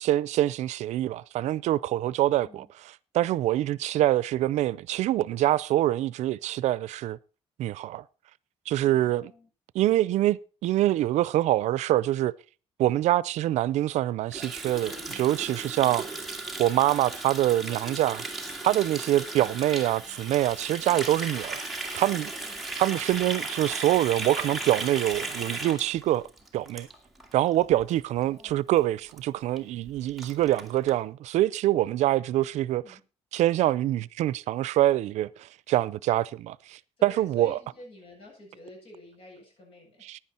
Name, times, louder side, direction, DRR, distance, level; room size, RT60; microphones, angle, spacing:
voice 1, 0.0-2.6 3.1-7.2 7.6-8.0 8.7-9.3 9.7-12.3 12.8-16.0 16.6-18.2 18.6-22.3 22.8-26.3 26.5-26.9 27.3-32.8 33.3-37.6 40.1-40.2, right 14 dB, 80° right, 0.5 m, -25 dB
voice 2, 2.4-2.7 8.9-9.5 15.8-16.1 22.3-22.6 28.2-28.7 32.7-33.0 37.0-40.1, left 2 dB, 55° left, 7.6 m, -50 dB
Water tap faucet, 14.3-27.3 27.6-27.9 28.2-28.5 28.8-28.9 29.1-29.2 29.6-29.7 29.9-30.9, right 2 dB, ahead, 1.9 m, -36 dB
15.0 x 10.0 x 4.3 m
cardioid pair, 165°, 12 cm